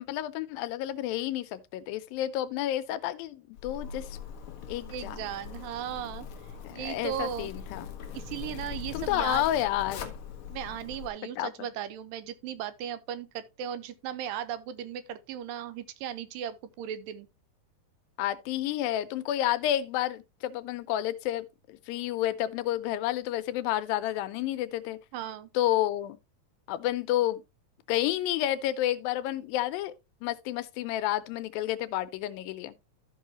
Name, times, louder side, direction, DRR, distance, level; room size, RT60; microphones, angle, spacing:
voice 1, 0.0-4.2 4.7-5.3 6.6-7.9 8.9-10.1 11.2-11.7 18.2-25.0 25.5-26.2 26.7-27.4 27.9-29.9 30.2-32.8, left 13 dB, 90° left, 2.4 m, -30 dB
Zipper (clothing), 3.6-11.1, left 7 dB, 70° left, 1.2 m, -41 dB
voice 2, 4.9-6.3 6.7-7.5 8.1-9.4 10.5-17.3 25.1-25.5, right 10 dB, 80° right, 2.3 m, -36 dB
13.5 x 5.6 x 2.9 m
omnidirectional pair, 4.0 m